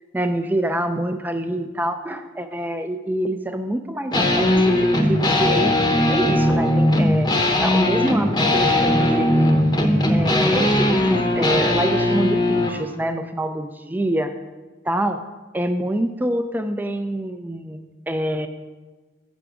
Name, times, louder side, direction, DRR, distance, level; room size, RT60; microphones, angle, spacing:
voice 1, 0.1-4.7 5.0-5.8 6.1-7.3 7.6-9.3 10.1-14.3 14.8-15.2 15.5-18.5, right 1 dB, 10° right, 8 dB, 0.3 m, -26 dB
sound 1, 4.1-12.8, left 1 dB, 20° left, 0.7 m, -19 dB
7.9 x 6.2 x 4.8 m, 1.3 s
head